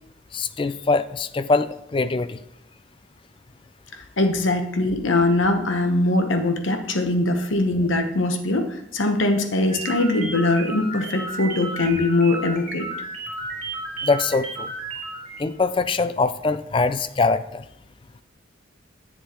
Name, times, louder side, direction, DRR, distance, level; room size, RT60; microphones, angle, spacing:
voice 1, 0.3-2.4 14.0-14.7 15.4-17.6, left 3 dB, 25° left, 13 dB, 0.3 m, -23 dB
voice 2, 4.0-12.9, left 2 dB, 85° left, 6 dB, 1.0 m, -22 dB
sound 1, 9.7-15.5, right 2 dB, 40° right, 2.0 m, -33 dB
10.0 x 7.4 x 3.0 m, 0.77 s
head